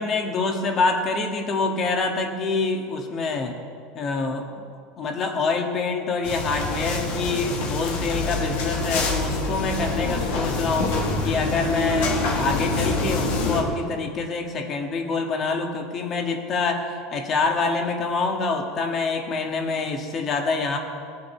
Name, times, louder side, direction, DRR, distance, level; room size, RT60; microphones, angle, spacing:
voice 1, 0.0-3.6 3.9-4.7 5.0-11.0 11.2-20.8, left 4 dB, 35° left, 3 dB, 1.7 m, -26 dB
sound 1, 6.2-13.6, left 3 dB, 75° left, 2.4 m, -26 dB
19.0 x 7.7 x 4.5 m, 2.3 s
supercardioid pair, 135°, 0 cm